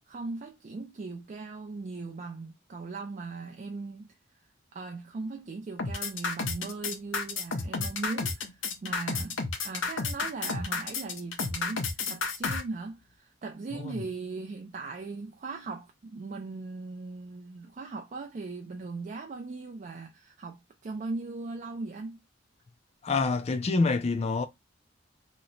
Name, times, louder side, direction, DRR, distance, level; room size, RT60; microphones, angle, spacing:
voice 1, 0.1-4.1 4.7-22.2, right 3 dB, 40° right, 0.4 m, -39 dB
sound 1, 5.8-12.6, left 4 dB, 85° left, 0.7 m, -31 dB
voice 2, 23.0-24.5, left 3 dB, 35° left, 0.3 m, -27 dB
2.9 x 2.0 x 3.8 m
head